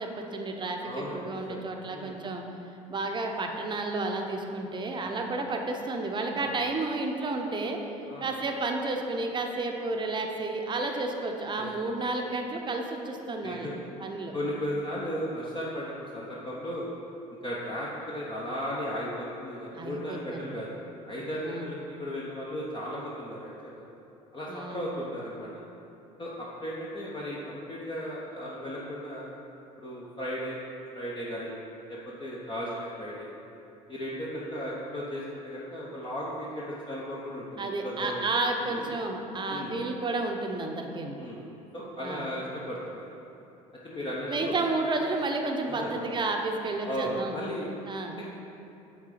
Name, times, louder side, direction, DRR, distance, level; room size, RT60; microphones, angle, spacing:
voice 1, 0.0-0.8 1.1-2.4 2.9-7.8 8.2-13.7 14.0-14.3 19.7-20.6 21.4-21.7 24.5-24.9 37.6-41.2 42.0-42.3 44.3-47.4 47.9-48.2, right 2 dB, 25° right, 2 dB, 0.8 m, -31 dB
voice 2, 0.8-1.6 1.9-2.2 5.0-5.1 6.3-6.5 8.0-8.4 11.6-11.7 13.4-13.8 14.3-16.9 17.4-20.7 21.1-23.8 24.3-25.5 26.2-29.3 29.8-30.6 30.9-31.6 31.9-33.3 33.9-38.3 38.7-38.9 39.5-39.7 41.2-41.4 41.7-43.1 43.8-44.6 44.9-45.0 45.7-46.0 46.8-47.7 48.2-48.3, equal, 25° left, -5 dB, 1.0 m, -35 dB
8.2 x 3.7 x 5.1 m, 2.9 s
figure-of-eight pair, 60°, 19 cm